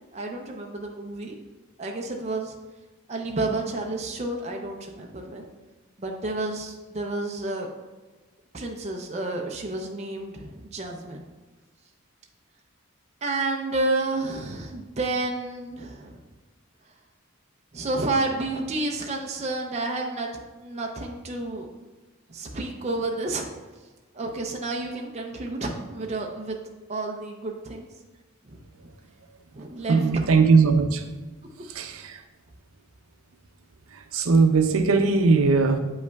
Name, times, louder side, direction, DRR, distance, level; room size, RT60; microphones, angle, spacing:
voice 1, 0.1-1.4 1.8-2.5 3.1-5.5 6.0-7.7 8.5-11.2 13.2-16.2 17.7-21.7 22.3-23.5 24.1-26.6 26.9-27.9 28.4-28.9 29.5-30.0, right 2 dB, 30° right, 1 dB, 0.5 m, -30 dB
voice 2, 29.9-31.1 31.6-32.2 33.9-35.8, right 4 dB, 80° right, 7 dB, 0.6 m, -20 dB
7.9 x 5.4 x 2.3 m, 1.2 s
head